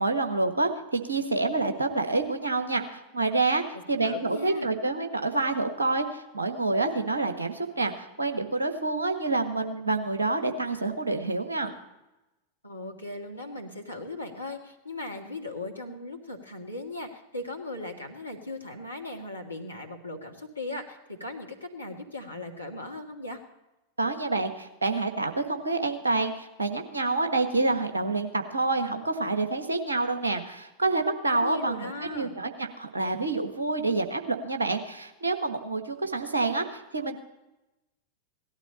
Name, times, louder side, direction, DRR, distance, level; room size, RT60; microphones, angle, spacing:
voice 1, 0.0-3.6 3.9-11.7 24.0-37.2, right 3 dB, 75° right, 5 dB, 1.4 m, -28 dB
voice 2, 3.7-4.7 12.6-23.4 31.4-32.3, left 2 dB, 85° left, 2 dB, 1.9 m, -38 dB
17.5 x 12.0 x 4.2 m, 0.97 s
figure-of-eight pair, 90°, 0 cm